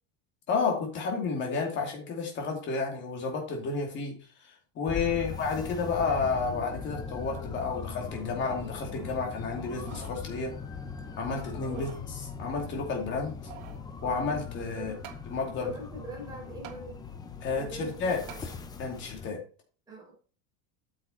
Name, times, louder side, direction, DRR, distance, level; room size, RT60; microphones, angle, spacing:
voice 1, 0.5-10.5 11.2-11.9 12.4-13.3 14.0-14.9 15.3-15.8 17.4-18.2 18.8-19.4, left 4 dB, 30° left, 2 dB, 2.5 m, -31 dB
sound 1, 4.9-19.3, left 6 dB, 10° left, 0.5 m, -40 dB
sound 2, 9.6-10.2 10.7-10.8 11.5-12.1 13.1-13.9 15.0-15.3 16.6-16.8 18.3-18.5 19.1-19.2, right 10 dB, 70° right, 1.7 m, -47 dB
voice 2, 15.6-17.0 17.6-18.5 19.9-20.1, right 3 dB, 10° right, -5 dB, 4.7 m, -43 dB
8.7 x 6.6 x 4.3 m, 0.37 s
cardioid pair, 170°, 39 cm